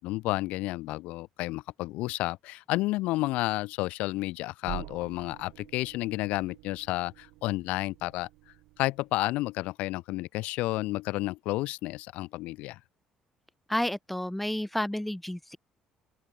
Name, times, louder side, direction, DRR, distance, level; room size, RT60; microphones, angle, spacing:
voice 1, 0.0-8.3 8.8-12.8, left 19 dB, 85° left, 4.3 m, -31 dB
sound 1, 4.6-9.3, right 22 dB, 85° right, 3.2 m, -47 dB
voice 2, 13.7-15.6, left 1 dB, 5° left, 5.7 m, -31 dB
open air
cardioid pair, 95°, 2 cm